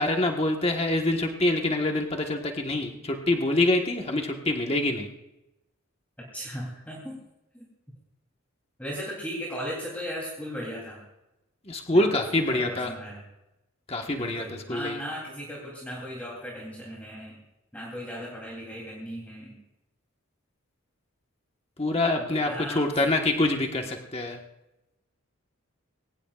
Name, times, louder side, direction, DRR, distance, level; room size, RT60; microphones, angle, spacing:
voice 1, 0.0-5.1 11.6-12.9 13.9-15.0 21.8-24.4, left 2 dB, 30° left, 3 dB, 1.4 m, -25 dB
voice 2, 6.2-7.2 7.5-7.6 8.8-11.0 11.9-13.2 14.2-17.4 17.7-19.6 22.2-23.1, equal, 5° left, -4 dB, 3.3 m, -37 dB
22.0 x 18.5 x 2.5 m, 0.95 s
head